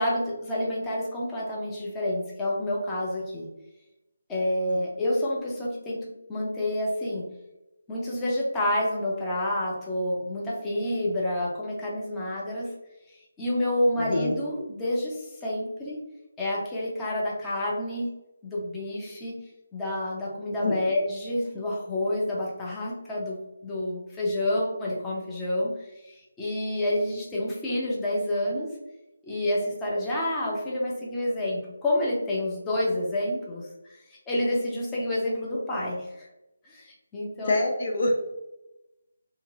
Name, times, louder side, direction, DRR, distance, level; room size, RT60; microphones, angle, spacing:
voice 1, 0.0-3.5 4.3-7.2 7.9-12.7 13.4-16.0 16.4-18.1 18.4-19.3 19.7-25.7 26.0-28.7 29.2-36.3 36.6-37.6, left 1 dB, 10° left, -5 dB, 0.7 m, -29 dB
voice 2, 14.0-14.3 20.6-20.7 37.4-38.2, left 2 dB, 50° left, 1 dB, 0.5 m, -25 dB
2.9 x 2.9 x 2.4 m, 0.95 s
figure-of-eight pair, 155°, 0 cm